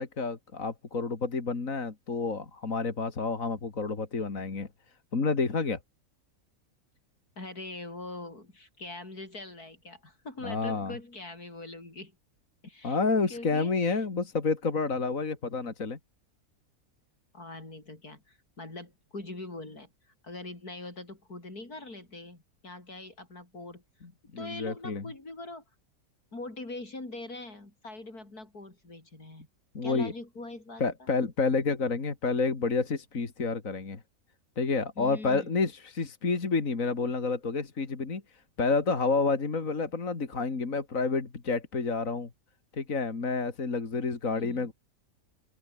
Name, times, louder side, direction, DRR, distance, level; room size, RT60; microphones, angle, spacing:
voice 1, 0.0-4.7 5.1-5.8 10.4-10.9 12.8-16.0 24.3-25.0 29.7-30.1 30.8-34.0 34.6-38.2 38.6-42.3 42.7-44.7, left 4 dB, 60° left, 3.0 m, -29 dB
voice 2, 7.4-12.2 12.6-13.0 13.3-14.0 17.3-19.9 20.2-23.8 24.4-25.6 26.3-29.5 29.8-31.1 35.0-35.6 44.3-44.7, left 2 dB, 85° left, 6.5 m, -42 dB
open air
omnidirectional pair, 1.6 m